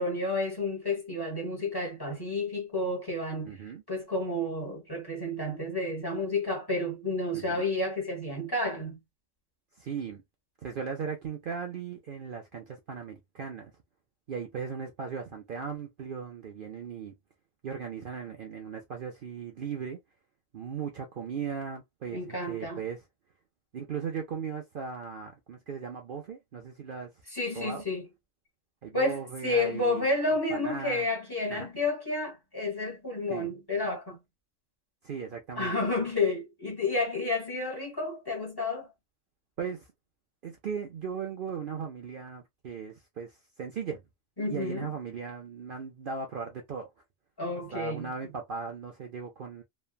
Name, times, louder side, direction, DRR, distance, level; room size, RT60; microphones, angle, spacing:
voice 1, 0.0-3.6 3.9-9.0 22.1-22.8 27.3-28.0 28.9-34.2 35.5-38.9 44.4-44.9 47.4-48.1, left 2 dB, 20° left, 1.1 m, -30 dB
voice 2, 3.4-3.8 7.3-7.7 9.8-10.2 10.6-13.7 14.3-17.1 17.6-20.0 20.5-23.0 23.7-27.1 27.6-27.8 28.8-30.0 30.5-31.1 31.5-31.7 33.3-33.5 35.0-35.7 39.6-39.9 40.4-44.0 44.5-46.9 47.7-49.6, right 6 dB, 55° right, 0.7 m, -37 dB
3.2 x 2.2 x 2.2 m
omnidirectional pair, 1.3 m